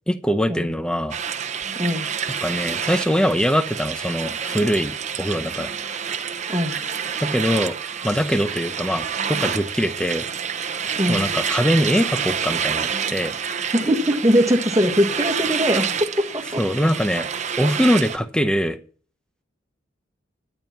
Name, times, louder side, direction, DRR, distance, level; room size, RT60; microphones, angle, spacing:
voice 1, 0.1-1.2 2.4-5.7 7.2-7.8 8.0-10.3 11.1-13.3 16.6-17.3 17.6-18.8, equal, 5° left, 12 dB, 0.8 m, -22 dB
sound 1, 1.1-18.2, right 7 dB, 40° right, 0.9 m, -28 dB
voice 2, 11.0-11.3 13.7-16.6, equal, 20° right, 4 dB, 1.6 m, -21 dB
12.0 x 9.1 x 5.9 m, 0.43 s
head